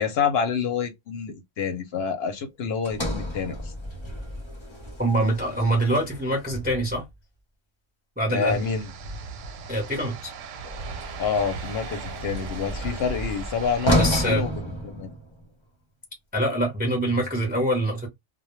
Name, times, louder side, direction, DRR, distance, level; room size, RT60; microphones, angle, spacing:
voice 1, 0.0-3.7 8.3-8.9 11.2-15.1, left 6 dB, 60° left, 0.8 m, -28 dB
Sliding door, 2.8-7.1 10.6-15.5, equal, 30° left, 0.6 m, -31 dB
voice 2, 5.0-7.0 8.2-8.6 9.7-10.3 14.0-14.5 16.3-18.1, right 1 dB, 10° right, 0.6 m, -24 dB
sound 1, 8.5-14.3, right 5 dB, 90° right, 0.9 m, -38 dB
2.2 x 2.1 x 3.0 m
omnidirectional pair, 1.3 m